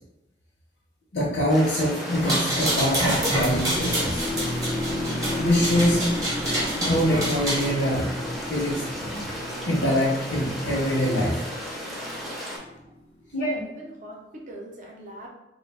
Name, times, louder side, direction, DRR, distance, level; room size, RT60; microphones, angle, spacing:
voice 1, 1.1-4.2 5.3-6.0 6.8-8.1 8.5-9.3 9.6-11.4 13.3-13.5, equal, 85° left, -7 dB, 0.7 m, -24 dB
sound 1, 1.5-12.6, equal, ahead, 0.5 m, -35 dB
sound 2, 2.1-7.7, right 1 dB, 20° right, 0.9 m, -27 dB
sound 3, 3.3-13.3, left 1 dB, 50° left, 0.5 m, -34 dB
voice 2, 13.3-15.3, right 1 dB, 45° right, -1 dB, 0.6 m, -41 dB
2.3 x 2.2 x 3.3 m, 0.91 s
head